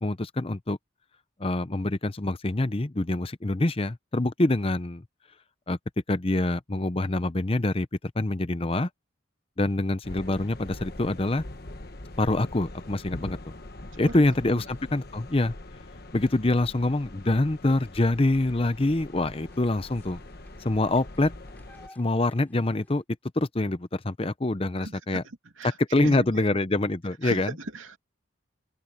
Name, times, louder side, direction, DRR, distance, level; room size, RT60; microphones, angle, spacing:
voice 1, 0.0-0.8 1.4-5.0 5.7-5.8 6.1-7.9 8.2-8.9 9.6-11.4 12.2-13.5 14.0-15.5 16.1-20.2 20.6-21.3 22.0-23.0 23.4-25.2 25.8-27.5, left 2 dB, 30° left, 0.7 m, -25 dB
sound 1, 10.0-21.9, left 1 dB, 50° left, 1.3 m, -43 dB
voice 2, 13.9-14.6 24.8-26.6 27.2-28.0, right 2 dB, 85° right, 2.7 m, -39 dB
sound 2, 18.0-23.0, left 1 dB, 10° left, 7.2 m, -58 dB
head